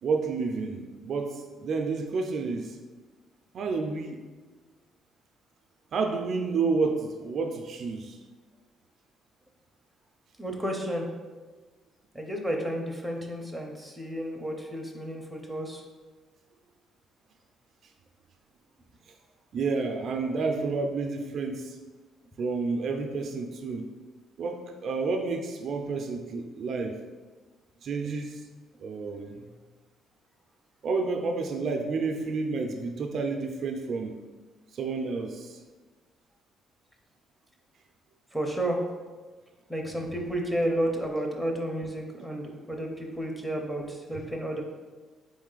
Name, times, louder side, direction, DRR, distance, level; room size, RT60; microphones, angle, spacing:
voice 1, 0.0-2.8 3.5-4.2 5.9-8.2 19.5-21.8 22.4-23.9 24.4-26.9 27.8-28.4 28.8-29.5 30.8-34.1 34.7-35.6, right 4 dB, 50° right, 4 dB, 0.3 m, -30 dB
voice 2, 10.4-11.1 12.1-15.8 38.3-38.8 39.7-44.6, right 1 dB, ahead, 0 dB, 0.5 m, -31 dB
4.1 x 3.1 x 3.8 m, 1.3 s
cardioid pair, 150°, 0 cm